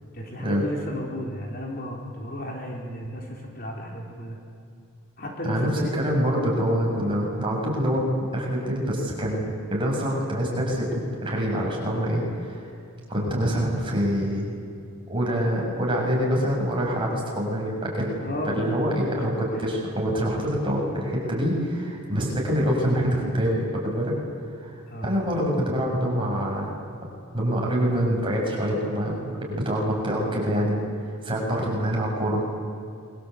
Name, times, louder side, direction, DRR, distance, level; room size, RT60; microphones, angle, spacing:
voice 1, 0.1-4.4 5.2-6.0 7.0-7.2 18.2-18.8 19.2-19.7 24.9-25.2, equal, 45° left, 0 dB, 4.0 m, -34 dB
voice 2, 5.4-8.0 8.3-12.7 13.1-14.6 15.1-18.1 18.4-24.2 24.6-26.7 27.3-29.2 29.5-30.8 31.0-32.4, equal, 25° right, -2 dB, 6.9 m, -25 dB
27.5 x 23.0 x 8.3 m, 2.5 s
head